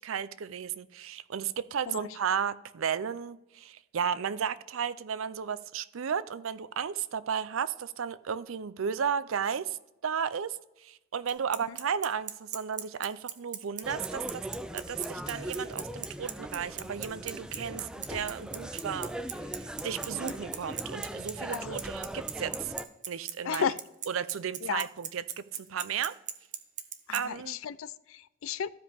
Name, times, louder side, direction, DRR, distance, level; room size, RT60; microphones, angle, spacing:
voice 1, 0.0-9.8 10.0-14.5 14.7-22.7 23.1-23.7 24.1-26.1 27.1-27.6, right 7 dB, 75° right, 15 dB, 0.5 m, -34 dB
Bicycle, 11.3-27.2, right 10 dB, 35° right, 0.7 m, -36 dB
sound 1, 13.8-22.9, right 1 dB, 5° right, 0.4 m, -39 dB
voice 2, 23.4-23.8 24.6-24.9 27.1-28.7, left 7 dB, 75° left, 18 dB, 0.4 m, -34 dB
14.5 x 5.1 x 3.5 m, 0.91 s
head